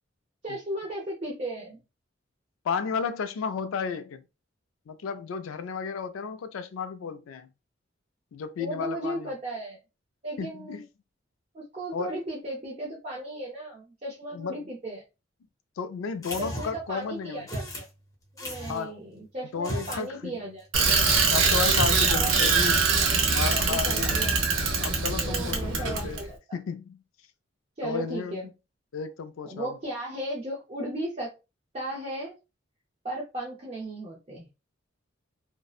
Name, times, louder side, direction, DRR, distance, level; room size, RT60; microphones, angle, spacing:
voice 1, 0.4-1.8 8.6-9.8 10.2-10.8 11.5-15.0 16.4-17.8 18.3-20.7 22.1-22.7 23.5-24.3 25.2-26.4 27.8-28.5 29.4-31.3 31.7-32.4 33.0-34.5, right 1 dB, 30° right, 0.6 m, -36 dB
voice 2, 2.6-4.2 4.9-7.5 8.3-9.3 10.4-10.8 11.9-12.1 14.3-14.6 15.8-17.4 18.7-18.9 19.5-20.4 21.3-22.9 23.3-24.3 24.8-26.2 26.5-27.0 27.8-28.4 28.9-29.8, left 6 dB, 85° left, 0.3 m, -33 dB
sound 1, 16.2-16.9 17.5-17.9 18.4-18.8 19.5-20.1 20.3-20.4 20.8-21.3 21.7-22.2, equal, 15° left, 0.6 m, -35 dB
Bicycle, 20.7-26.2, right 4 dB, 75° right, 0.6 m, -23 dB
2.6 x 2.1 x 2.3 m
head